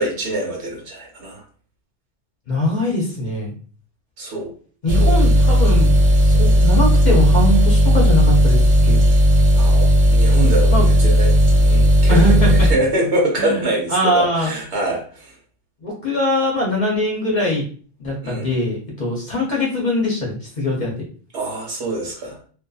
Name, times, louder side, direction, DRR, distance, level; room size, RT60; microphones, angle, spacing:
voice 1, 0.0-1.4 4.2-4.5 5.0-5.1 9.5-15.3 18.2-18.5 21.3-22.4, right 1 dB, 70° right, -1 dB, 1.2 m, -25 dB
voice 2, 2.5-3.5 4.8-9.0 10.7-10.9 12.1-12.7 13.4-13.6 13.9-14.5 15.8-17.6 18.0-20.9, left 1 dB, 45° left, -2 dB, 0.7 m, -21 dB
sound 1, 4.9-12.7, equal, 50° right, 0.6 m, -14 dB
2.6 x 2.4 x 2.3 m, 0.43 s
omnidirectional pair, 1.2 m